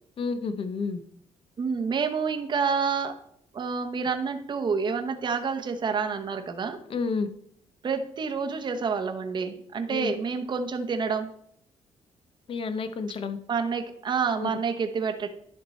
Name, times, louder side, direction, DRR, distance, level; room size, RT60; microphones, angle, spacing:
voice 1, 0.2-1.0 6.9-7.3 9.9-10.1 12.5-13.4 14.4-14.5, left 4 dB, 45° left, 10 dB, 0.8 m, -30 dB
voice 2, 1.6-3.2 3.5-6.8 7.8-11.3 13.5-15.3, right 5 dB, 40° right, 5 dB, 0.8 m, -28 dB
11.0 x 4.5 x 4.2 m, 0.69 s
cardioid pair, 130°, 12 cm